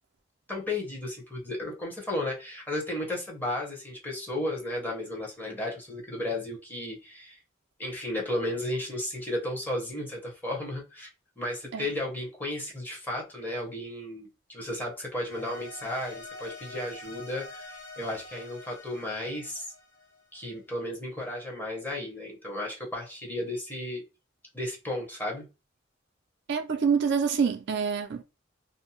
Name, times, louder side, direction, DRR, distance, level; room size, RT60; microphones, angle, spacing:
voice 1, 0.5-7.4 7.8-11.1 11.4-19.7 20.3-24.0 24.5-25.4, left 1 dB, 10° left, 0.9 m, -34 dB
sound 1, 15.2-20.5, left 2 dB, 50° left, 1.3 m, -46 dB
voice 2, 26.5-28.2, right 6 dB, 60° right, 0.4 m, -26 dB
2.6 x 2.1 x 2.8 m
head